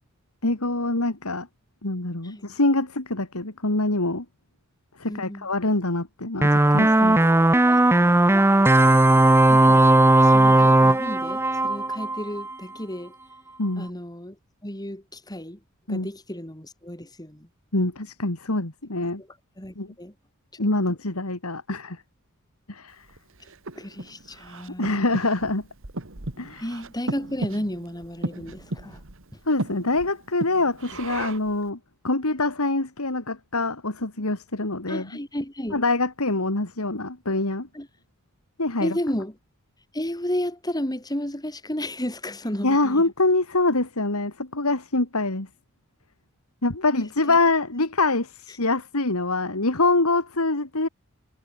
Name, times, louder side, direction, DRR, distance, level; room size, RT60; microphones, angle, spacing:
voice 1, 0.4-1.5 1.8-4.2 5.0-7.2 13.6-13.9 15.9-16.1 17.7-19.2 19.8-19.9 20.6-22.0 22.7-23.0 24.8-25.6 26.4-26.6 29.5-31.8 32.0-35.0 35.7-37.7 38.6-38.9 42.6-45.5 46.6-50.9, left 2 dB, 80° left, 2.9 m, -25 dB
voice 2, 5.1-5.5 7.7-7.8 9.5-9.9 10.2-13.1 13.8-15.6 15.9-17.5 19.0-20.1 20.9-21.0 23.7-25.2 26.6-29.0 29.3-29.4 34.9-35.8 37.7-37.9 38.8-39.4 39.9-43.0 47.3-47.4 48.5-48.6, left 1 dB, 20° left, 4.6 m, -33 dB
sound 1, 6.4-12.5, right 2 dB, 10° right, 0.6 m, -17 dB
Breathing, 23.1-31.6, right 2 dB, 60° right, 2.2 m, -36 dB
head